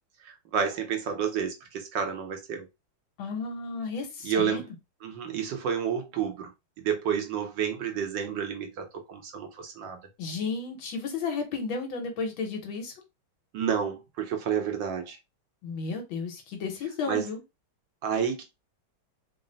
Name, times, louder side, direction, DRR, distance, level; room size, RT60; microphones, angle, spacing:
voice 1, 0.2-2.7 4.2-4.6 5.0-6.5 6.8-10.0 13.5-15.2 17.1-17.2 18.0-18.4, right 7 dB, 70° right, 1.4 m, -30 dB
voice 2, 3.2-4.6 10.2-12.9 15.6-17.4, left 4 dB, 75° left, 1.7 m, -33 dB
3.8 x 2.1 x 3.9 m
omnidirectional pair, 2.3 m